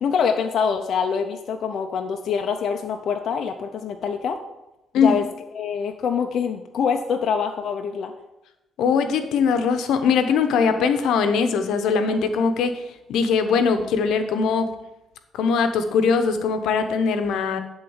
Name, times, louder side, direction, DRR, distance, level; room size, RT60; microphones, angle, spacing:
voice 1, 0.0-4.4 5.0-5.3 5.6-8.1, left 6 dB, 65° left, 4 dB, 0.7 m, -25 dB
voice 2, 8.8-12.8 13.1-14.7 15.3-17.6, left 5 dB, 85° left, 8 dB, 1.0 m, -21 dB
11.5 x 4.0 x 7.2 m, 0.96 s
cardioid pair, 90°, 0 cm